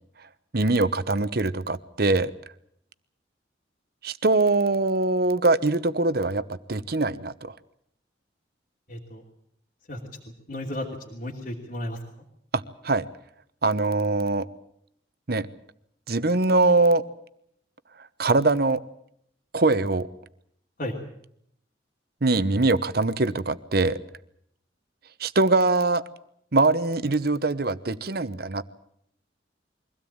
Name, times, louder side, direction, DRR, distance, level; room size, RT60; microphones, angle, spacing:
voice 1, 0.5-2.3 4.0-6.4 6.7-7.5 12.5-13.0 13.6-14.5 15.3-15.5 16.1-17.0 18.2-18.8 19.5-20.1 22.2-24.0 25.2-26.0 26.5-28.6, right 3 dB, 55° right, 14 dB, 1.0 m, -22 dB
voice 2, 8.9-9.2 9.9-10.0 10.5-12.0 20.8-21.0, left 1 dB, 50° left, -1 dB, 2.8 m, -33 dB
23.5 x 16.5 x 8.8 m, 0.72 s
head